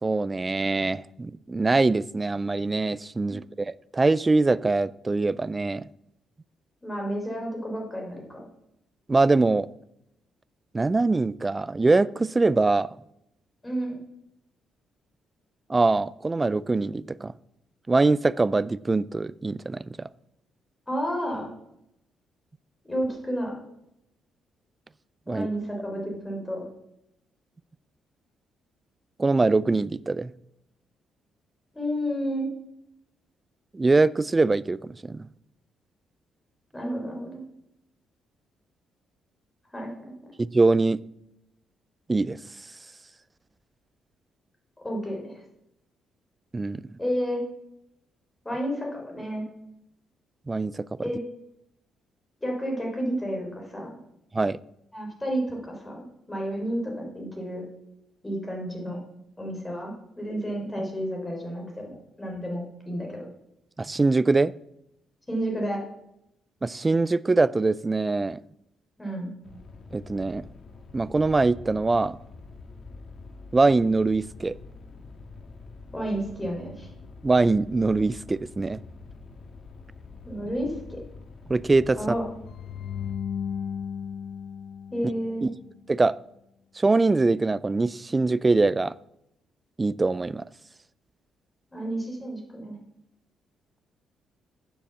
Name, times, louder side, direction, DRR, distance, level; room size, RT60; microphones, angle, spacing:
voice 1, 0.0-5.9 9.1-9.7 10.7-12.9 15.7-17.3 17.9-20.0 25.3-25.5 29.2-30.3 33.7-35.3 40.4-41.0 42.1-42.4 46.5-46.8 50.5-50.8 54.3-54.6 63.8-64.5 66.6-68.4 69.9-70.5 70.9-72.2 73.5-74.5 77.2-78.8 81.5-82.0 85.4-85.5 85.9-86.2 86.8-88.9 89.8-90.4, right 3 dB, 20° right, 20 dB, 0.3 m, -23 dB
voice 2, 6.8-8.4 13.6-14.0 20.9-21.5 22.8-23.5 25.3-26.7 31.7-32.5 36.7-37.4 39.7-39.9 44.8-45.4 47.0-47.4 48.4-49.5 51.0-51.2 52.4-53.9 54.9-57.6 58.2-59.0 59.4-63.3 65.3-65.8 69.0-69.3 75.9-76.9 80.2-81.0 81.9-82.3 84.9-85.5 91.7-92.8, equal, 15° left, 0 dB, 3.9 m, -31 dB
sound 1, 69.4-83.1, left 3 dB, 50° left, 1.7 m, -45 dB
sound 2, 82.5-85.7, left 8 dB, 65° left, 0.5 m, -35 dB
9.8 x 7.1 x 7.1 m, 0.83 s
cardioid pair, 90°, 0 cm